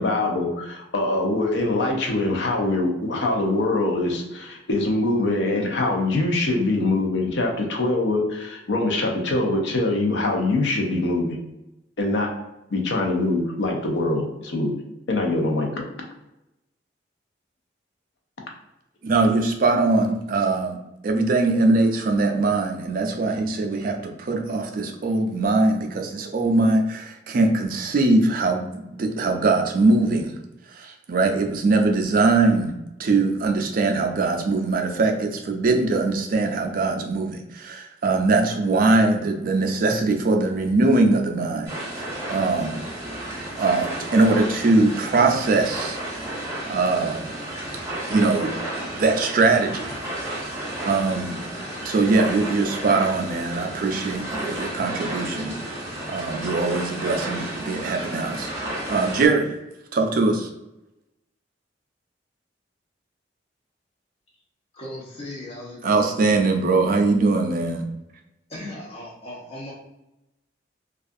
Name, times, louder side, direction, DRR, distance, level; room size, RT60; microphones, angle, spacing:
voice 1, 0.0-11.4 12.0-12.3 12.7-14.7 15.1-15.9, left 2 dB, 75° left, 2 dB, 0.5 m, -23 dB
voice 2, 19.0-20.8 21.0-30.4 30.7-32.7 33.0-42.0 42.3-42.8 43.1-43.2 43.6-46.0 46.7-47.3 48.1-49.9 50.3-50.5 50.8-51.4 51.8-55.5 56.1-59.5 59.9-60.5 65.8-67.9, right 3 dB, 50° right, 4 dB, 0.3 m, -22 dB
sound 1, 41.7-59.3, right 1 dB, 15° right, 0.7 m, -32 dB
voice 3, 64.7-66.2 68.5-69.7, left 1 dB, 35° left, -4 dB, 0.7 m, -37 dB
2.4 x 2.3 x 2.5 m, 0.92 s
head